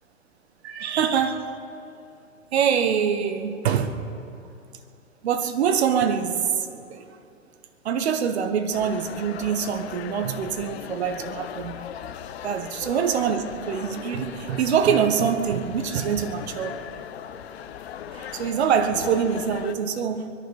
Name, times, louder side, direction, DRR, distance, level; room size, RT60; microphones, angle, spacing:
voice 1, 0.6-1.6 2.5-4.0 5.2-7.1 7.8-11.9 12.4-16.8 18.1-20.3, right 7 dB, 55° right, 1.2 m, -24 dB
sound 1, 8.7-19.8, left 9 dB, 50° left, 0.8 m, -38 dB
22.5 x 10.5 x 5.3 m
figure-of-eight pair, 110°, 39 cm